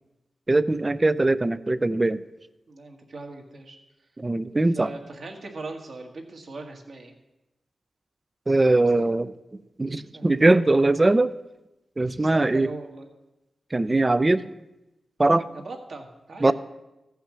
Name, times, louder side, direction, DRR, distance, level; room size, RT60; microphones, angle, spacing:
voice 1, 0.5-2.2 4.2-4.9 8.5-9.3 9.8-11.4 12.0-12.7 13.7-14.5 15.2-15.5 16.4-16.5, right 2 dB, 20° right, 16 dB, 0.4 m, -21 dB
voice 2, 2.7-3.8 4.7-7.1 9.0-9.1 10.1-10.3 12.0-13.1 15.5-16.5, right 3 dB, 55° right, 3 dB, 1.6 m, -39 dB
15.0 x 5.7 x 7.3 m, 1.0 s
wide cardioid pair, 155°, 0 cm